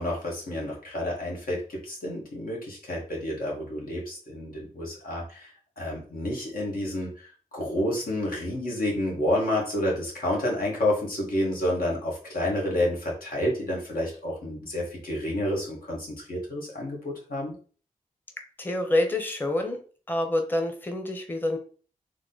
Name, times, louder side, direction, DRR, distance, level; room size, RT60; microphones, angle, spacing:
voice 1, 0.0-5.5 5.8-7.3 7.5-17.5, left 1 dB, 85° left, -3 dB, 1.8 m, -29 dB
voice 2, 18.6-19.8 20.1-21.6, left 1 dB, 15° left, 5 dB, 0.7 m, -27 dB
3.7 x 3.3 x 3.9 m, 0.41 s
wide cardioid pair, 110°, 15 cm